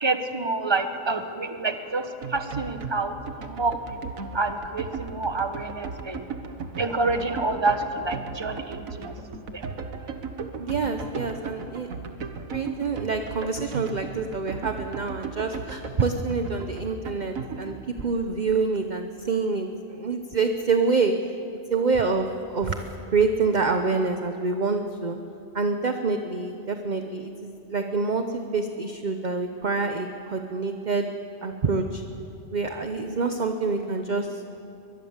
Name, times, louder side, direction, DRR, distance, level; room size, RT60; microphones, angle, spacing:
voice 1, 0.0-6.3 6.8-9.1 9.5-9.7, right 3 dB, 20° right, 7 dB, 1.3 m, -28 dB
sound 1, 2.2-17.8, right 5 dB, 80° right, 1.8 m, -36 dB
voice 2, 10.6-11.9 12.5-21.1 21.7-22.8 23.1-25.2 25.5-31.1 31.4-32.0 32.5-34.6, right 4 dB, 35° right, 6 dB, 1.0 m, -26 dB
23.0 x 21.5 x 7.4 m, 2.7 s
omnidirectional pair, 1.4 m